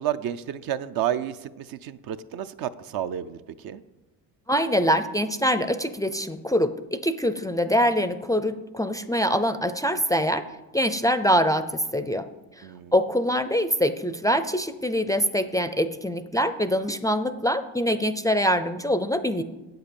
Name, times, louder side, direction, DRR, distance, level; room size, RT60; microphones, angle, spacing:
voice 1, 0.0-3.8 12.6-12.9, right 10 dB, 55° right, 11 dB, 0.7 m, -31 dB
voice 2, 4.5-10.4 10.7-12.3 12.9-19.4, equal, 10° left, 11 dB, 0.5 m, -24 dB
8.1 x 7.9 x 7.0 m, 1.1 s
supercardioid pair, 95°, 43 cm